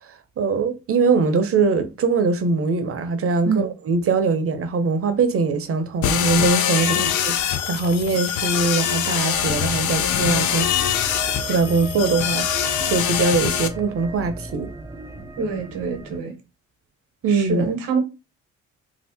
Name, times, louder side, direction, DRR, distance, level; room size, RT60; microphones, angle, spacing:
voice 1, 0.4-7.0 7.2-7.3 7.7-10.7 11.4-14.7 17.2-17.6, right 4 dB, 45° right, 0.7 m, -22 dB
sound 1, 6.0-13.7, left 10 dB, 65° left, 0.5 m, -23 dB
sound 2, 6.7-13.6, left 3 dB, 30° left, 0.8 m, -40 dB
voice 2, 6.7-7.1 15.4-16.3 17.3-18.0, right 5 dB, 75° right, 0.9 m, -26 dB
sound 3, 9.3-16.2, right 3 dB, 10° right, 0.4 m, -35 dB
2.7 x 2.3 x 3.4 m
supercardioid pair, 55°, 33 cm